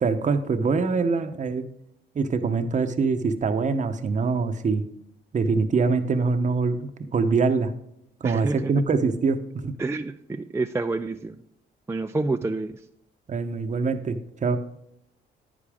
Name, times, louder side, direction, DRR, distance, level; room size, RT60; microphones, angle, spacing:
voice 1, 0.0-1.7 2.1-4.8 5.3-7.7 8.2-9.7 13.3-14.6, right 4 dB, 40° right, 8 dB, 0.8 m, -24 dB
voice 2, 8.2-8.7 9.8-11.4 11.9-12.7, right 3 dB, 15° right, 7 dB, 0.4 m, -28 dB
10.0 x 9.5 x 3.5 m, 0.78 s
cardioid pair, 90°, 20 cm